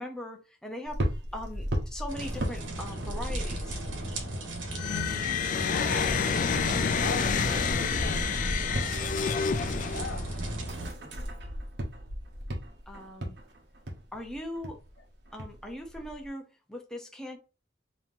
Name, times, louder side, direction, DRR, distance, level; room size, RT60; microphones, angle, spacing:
voice 1, 0.0-3.8 12.9-13.4 14.1-14.8 15.3-17.4, left 1 dB, 5° left, 0.7 m, -40 dB
sound 1, 0.8-5.2 5.5-16.3, equal, 60° right, 1.2 m, -37 dB
sound 2, 2.1-10.9, right 1 dB, 85° right, 1.2 m, -37 dB
sound 3, 4.7-10.4, left 6 dB, 45° left, 0.3 m, -29 dB
voice 2, 5.5-8.4 8.6-9.0 9.8-10.3, left 3 dB, 75° left, 0.8 m, -39 dB
5.5 x 3.0 x 2.7 m
head